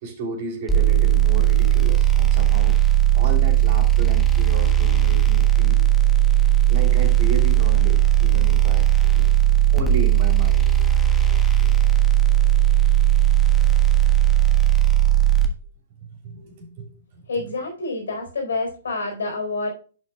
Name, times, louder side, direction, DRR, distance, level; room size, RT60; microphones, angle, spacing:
voice 1, 0.0-2.8 3.1-5.8 6.7-8.9 9.1-9.4 9.7-10.7 11.1-11.7 13.5-13.7 16.0-17.2, right 3 dB, 45° right, 3 dB, 3.2 m, -33 dB
sound 1, 0.7-15.5, right 13 dB, 10° left, 1.5 m, -17 dB
voice 2, 17.3-19.7, left 3 dB, 70° left, 2 dB, 4.3 m, -27 dB
11.0 x 6.4 x 2.3 m, 0.39 s
figure-of-eight pair, 115°, 0 cm